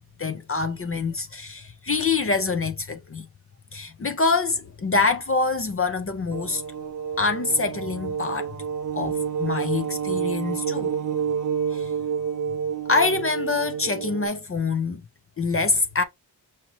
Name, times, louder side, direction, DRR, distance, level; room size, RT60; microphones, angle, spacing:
voice 1, 0.2-3.3 3.7-6.6 7.2-8.5 8.9-10.9 11.7-11.9 12.9-15.0 15.4-16.0, left 4 dB, 35° left, 0.6 m, -25 dB
sound 1, 6.3-14.3, right 7 dB, 50° right, 0.6 m, -29 dB
6.0 x 2.8 x 2.9 m
wide cardioid pair, 160°, 40 cm